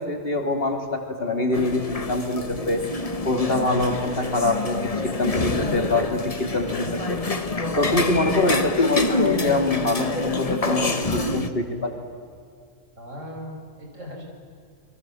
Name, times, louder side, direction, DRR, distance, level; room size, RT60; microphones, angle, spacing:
voice 1, 0.0-2.8 3.2-4.8 5.0-7.2 7.8-12.0, left 2 dB, 45° left, 4 dB, 3.0 m, -24 dB
sound 1, 1.5-11.5, left 2 dB, 30° left, 1.3 m, -26 dB
sound 2, 5.4-5.6 5.9-6.1 6.4-7.4 7.7-8.2 8.5-8.7 8.9-9.5 9.7-9.9 10.2-10.4, right 2 dB, 85° right, 3.9 m, -41 dB
voice 2, 13.0-14.2, equal, 65° right, 0 dB, 6.6 m, -38 dB
29.5 x 22.5 x 7.7 m, 2.3 s
omnidirectional pair, 1.4 m